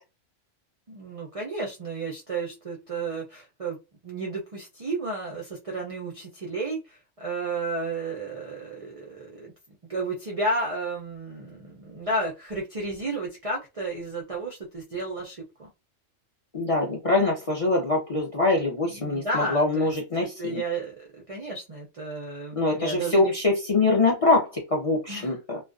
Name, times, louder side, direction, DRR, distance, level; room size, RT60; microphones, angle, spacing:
voice 1, 0.9-3.8 4.0-9.5 9.9-15.7 18.9-23.3 25.1-25.3, right 2 dB, 50° right, -1 dB, 0.4 m, -32 dB
voice 2, 16.5-20.6 22.6-25.6, left 2 dB, 40° left, 0 dB, 0.5 m, -24 dB
2.3 x 2.2 x 2.4 m, 0.27 s
omnidirectional pair, 1.3 m